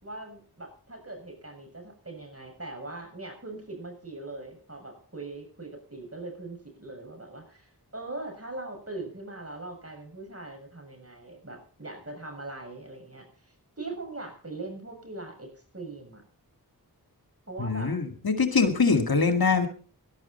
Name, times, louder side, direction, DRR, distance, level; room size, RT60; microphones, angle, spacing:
voice 1, 0.0-13.3 13.8-16.2 17.5-17.9, right 2 dB, 35° right, 3 dB, 6.8 m, -41 dB
voice 2, 17.6-19.7, left 4 dB, 65° left, 7 dB, 2.0 m, -23 dB
19.5 x 12.0 x 4.4 m, 0.42 s
wide cardioid pair, 45°, 39 cm